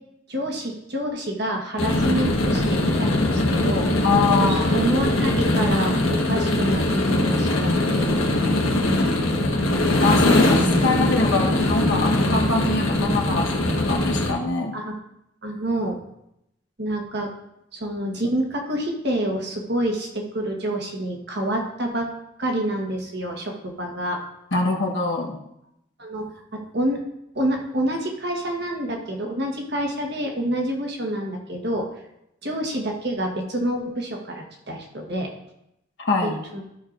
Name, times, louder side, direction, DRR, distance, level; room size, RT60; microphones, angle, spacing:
voice 1, 0.3-3.9 4.4-8.2 12.9-13.2 14.7-14.9 15.4-16.0 16.8-17.3 17.7-22.1 22.4-24.2 26.0-27.0 27.3-31.9 32.4-35.3 36.2-36.6, right 1 dB, 55° right, 1 dB, 1.4 m, -27 dB
sound 1, 1.8-14.3, left 1 dB, 90° left, 1.4 m, -21 dB
voice 2, 4.0-4.7 10.0-14.8 24.5-25.4 36.0-36.4, left 3 dB, 60° left, 0 dB, 1.2 m, -24 dB
13.0 x 6.5 x 2.6 m, 0.83 s
head